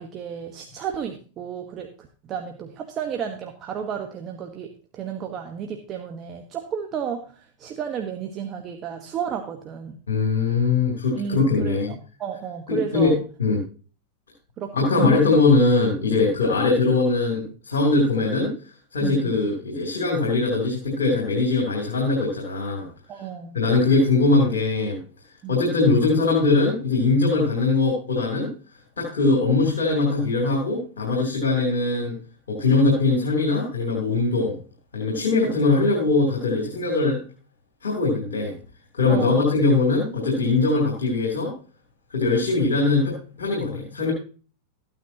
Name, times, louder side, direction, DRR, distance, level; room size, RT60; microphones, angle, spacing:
voice 1, 0.0-10.0 11.2-11.8 12.2-13.2 14.6-15.3 19.0-19.4 23.1-23.6 25.4-25.7 39.1-39.4, right 8 dB, 35° right, 4 dB, 1.1 m, -32 dB
voice 2, 10.1-11.9 12.7-13.6 14.7-18.5 18.9-22.9 23.5-25.0 25.5-28.5 29.0-32.2 32.5-34.6 34.9-37.2 37.8-38.5 38.9-41.5 42.1-44.1, left 3 dB, 90° left, -1 dB, 3.0 m, -21 dB
14.0 x 9.1 x 2.8 m, 0.38 s
hypercardioid pair, 105°, 0 cm